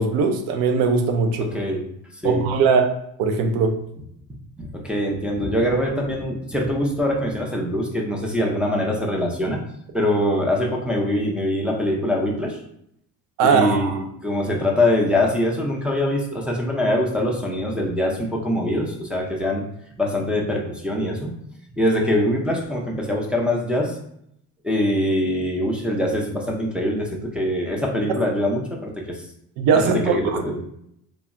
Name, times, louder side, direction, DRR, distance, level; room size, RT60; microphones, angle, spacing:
voice 1, 0.0-1.5 2.2-2.9 3.2-3.8 13.4-14.0 29.6-30.4, right 5 dB, 70° right, 5 dB, 0.6 m, -20 dB
voice 2, 1.4-1.9 2.2-2.4 4.6-9.6 9.9-12.6 13.4-19.6 20.0-21.4 21.8-24.0 24.6-29.2 29.8-30.6, left 1 dB, 5° right, -2 dB, 0.5 m, -23 dB
2.2 x 2.0 x 3.6 m, 0.72 s
supercardioid pair, 95°, 37 cm